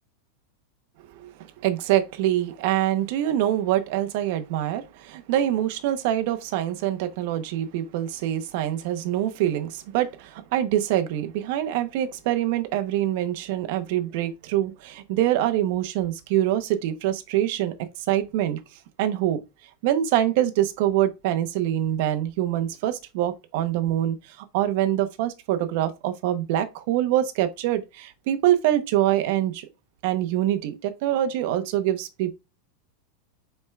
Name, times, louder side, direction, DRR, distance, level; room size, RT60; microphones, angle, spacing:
voice 1, 1.6-18.6 19.0-19.4 19.8-24.2 24.5-29.7 30.0-32.3, right 12 dB, 55° right, 0.8 m, -25 dB
5.3 x 4.4 x 2.3 m
supercardioid pair, 150°, 0 cm